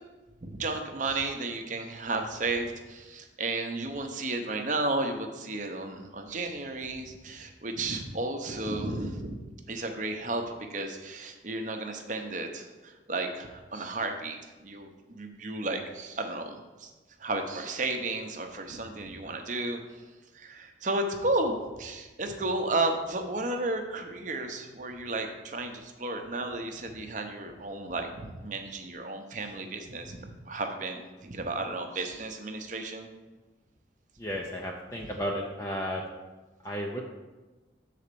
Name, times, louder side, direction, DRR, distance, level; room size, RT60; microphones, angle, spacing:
voice 1, 0.4-16.9 17.2-20.0 20.3-33.1, right 2 dB, 40° right, 4 dB, 0.8 m, -33 dB
voice 2, 34.2-36.0 36.6-37.0, equal, 15° left, -1 dB, 0.6 m, -33 dB
7.2 x 4.2 x 6.8 m, 1.2 s
head